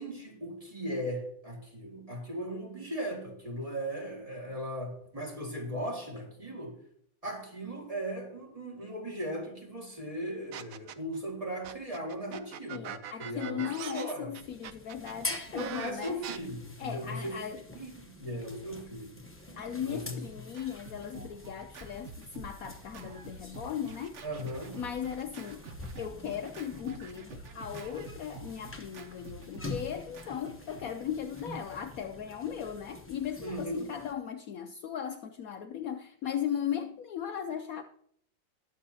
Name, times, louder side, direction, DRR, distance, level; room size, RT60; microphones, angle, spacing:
voice 1, 0.0-6.8 7.2-14.3 15.5-17.4 17.7-19.2 19.8-20.2 24.2-24.8 33.4-33.9, right 1 dB, 20° right, 2.1 m, -38 dB
sound 1, 10.5-11.2 11.6-16.4, right 9 dB, 75° right, 0.8 m, -42 dB
voice 2, 12.7-16.2 16.8-17.6 19.6-24.2 24.7-25.6 26.0-37.8, left 9 dB, 75° left, 0.8 m, -37 dB
sound 2, 14.4-34.1, left 2 dB, 15° left, 0.4 m, -46 dB
Scratching (performance technique), 19.6-31.7, right 4 dB, 50° right, 0.9 m, -49 dB
20.5 x 7.5 x 2.8 m
omnidirectional pair, 2.1 m